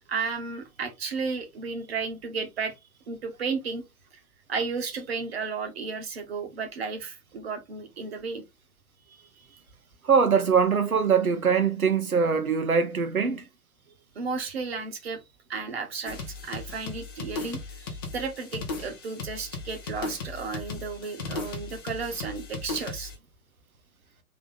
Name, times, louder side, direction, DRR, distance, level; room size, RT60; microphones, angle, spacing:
voice 1, 0.1-2.7 3.1-3.8 4.5-8.4 9.1-9.6 14.1-15.2 15.5-23.1, right 5 dB, 45° right, 1.4 m, -33 dB
voice 2, 10.0-13.4, right 6 dB, 75° right, 1.1 m, -22 dB
sound 1, 16.0-23.1, left 3 dB, 15° left, 0.6 m, -37 dB
3.8 x 3.4 x 3.5 m
figure-of-eight pair, 130°, 43 cm